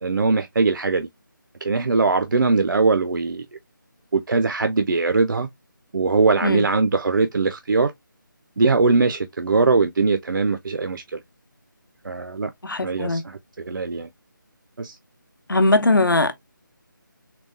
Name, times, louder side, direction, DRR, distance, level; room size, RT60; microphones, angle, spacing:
voice 1, 0.0-1.1 1.6-3.5 4.1-5.5 5.9-7.9 8.6-11.2 12.0-12.5 12.8-14.1 14.8-15.0, right 3 dB, 65° right, 0.4 m, -21 dB
voice 2, 12.6-13.2 15.5-16.3, left 2 dB, 75° left, 0.7 m, -19 dB
3.8 x 2.2 x 2.4 m
figure-of-eight pair, 160°, 11 cm